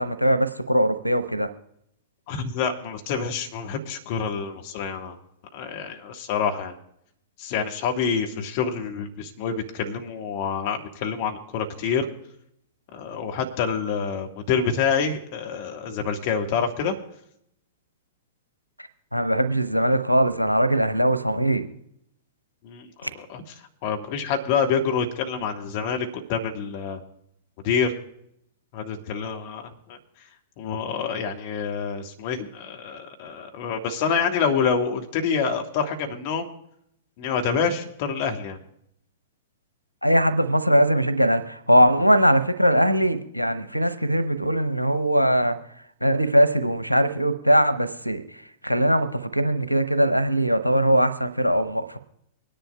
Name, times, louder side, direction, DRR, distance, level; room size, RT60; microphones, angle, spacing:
voice 1, 0.0-1.5 19.1-21.7 23.0-23.1 40.0-45.6 46.0-48.2 48.6-52.0, equal, 90° right, 14 dB, 0.8 m, -21 dB
voice 2, 2.3-5.2 5.5-6.7 7.4-12.1 12.9-16.9 22.6-23.4 23.8-27.0 27.6-27.9 28.7-30.0 30.6-36.5 37.2-38.6, left 6 dB, 45° left, 3 dB, 1.5 m, -27 dB
24.0 x 10.5 x 2.3 m, 0.75 s
figure-of-eight pair, 100°, 0 cm